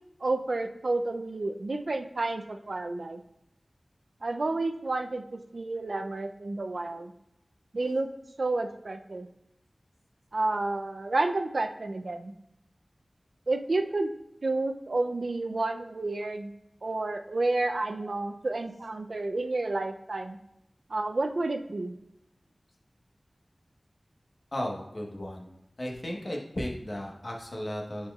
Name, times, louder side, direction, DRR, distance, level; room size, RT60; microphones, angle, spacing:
voice 1, 0.2-3.2 4.2-7.1 7.7-8.1 8.4-9.3 10.3-12.3 13.5-14.1 14.4-16.5 16.8-20.4 20.9-21.9, right 2 dB, 75° right, 7 dB, 0.4 m, -30 dB
voice 2, 24.5-25.5 25.8-28.1, equal, 55° left, 0 dB, 1.2 m, -35 dB
9.4 x 4.3 x 2.4 m, 0.84 s
wide cardioid pair, 65°, 0 cm